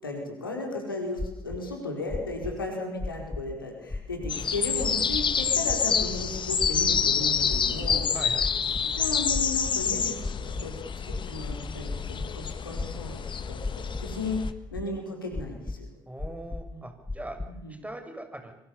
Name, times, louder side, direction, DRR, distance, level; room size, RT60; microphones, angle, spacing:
voice 1, 0.0-8.1 9.0-10.8 11.0-13.2 13.5-14.4 14.7-15.9 16.7-16.8 17.5-17.7, left 2 dB, 90° left, 2 dB, 4.6 m, -35 dB
sound 1, 1.2-1.6 2.1-2.5 3.0-3.5 3.9-4.3 4.8-5.2 5.7-6.1 6.6-7.0 7.5-8.0 8.4-8.9 9.3-9.8 10.2-10.6 11.1-12.3 12.7-13.2 13.6-14.1 14.4-14.9 15.3-15.8 16.2-16.7 17.1-17.5, left 2 dB, 20° left, 2.3 m, -34 dB
sound 2, 4.3-14.5, left 7 dB, 45° left, 1.9 m, -28 dB
voice 2, 8.1-8.5 9.8-10.0 16.1-17.4 17.8-18.5, right 1 dB, 10° right, 5 dB, 7.6 m, -41 dB
26.0 x 23.5 x 7.1 m, 0.76 s
figure-of-eight pair, 40°, 11 cm